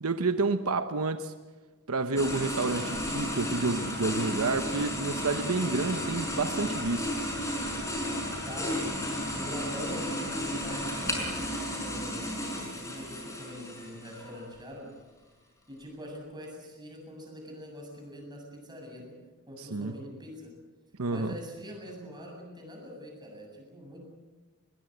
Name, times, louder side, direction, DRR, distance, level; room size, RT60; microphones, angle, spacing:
voice 1, 0.0-1.3 1.9-7.1 19.7-19.9 21.0-21.4, right 3 dB, 80° right, 9 dB, 1.0 m, -29 dB
sound 1, 2.2-14.5, equal, 15° left, 5.7 m, -33 dB
voice 2, 8.4-8.9 9.3-14.9 15.7-19.2 19.5-20.5 21.1-24.0, equal, 20° right, 0 dB, 7.7 m, -44 dB
22.0 x 20.0 x 8.0 m, 1.3 s
head